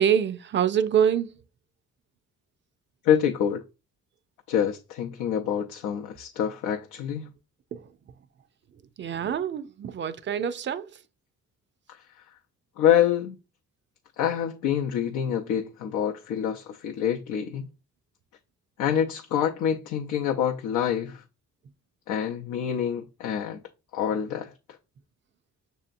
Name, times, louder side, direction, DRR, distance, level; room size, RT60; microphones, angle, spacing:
voice 1, 0.0-1.4 7.7-7.9 9.0-11.0, right 8 dB, 40° right, 0.4 m, -25 dB
voice 2, 3.0-3.6 4.5-7.3 11.9-12.0 12.8-13.4 14.2-17.7 18.8-21.2 22.1-23.6 23.9-24.5, left 9 dB, 85° left, 0.6 m, -26 dB
6.6 x 2.8 x 2.5 m
cardioid pair, 90°, 30 cm